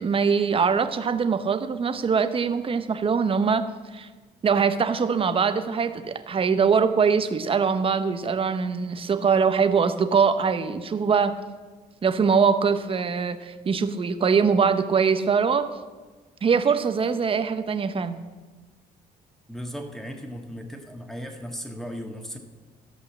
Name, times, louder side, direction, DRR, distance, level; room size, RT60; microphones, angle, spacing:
voice 1, 0.0-4.1 4.4-11.4 12.0-15.7 16.4-18.2, right 6 dB, 35° right, 10 dB, 0.9 m, -22 dB
voice 2, 19.5-22.4, equal, ahead, 4 dB, 1.7 m, -36 dB
15.0 x 5.5 x 7.4 m, 1.3 s
cardioid pair, 100°, 17 cm